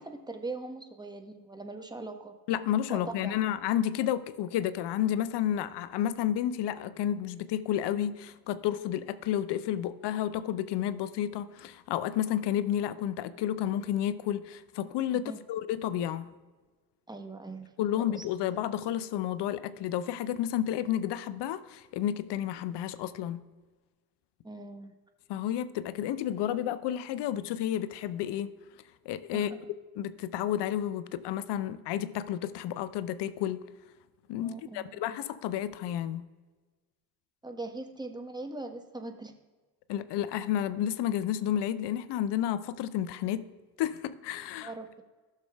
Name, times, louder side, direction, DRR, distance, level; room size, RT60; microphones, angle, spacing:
voice 1, 0.0-2.4 2.9-3.4 15.2-15.4 17.1-18.2 24.4-24.9 29.3-29.6 34.4-35.0 37.4-39.4 44.6-45.0, right 2 dB, 10° right, 5 dB, 1.1 m, -41 dB
voice 2, 2.5-16.3 17.8-23.4 25.3-28.5 29.1-29.5 30.0-33.6 34.3-36.2 39.9-43.5 43.8-44.7, left 11 dB, 55° left, 15 dB, 0.6 m, -31 dB
15.0 x 6.5 x 2.3 m, 1.3 s
hypercardioid pair, 45°, 50 cm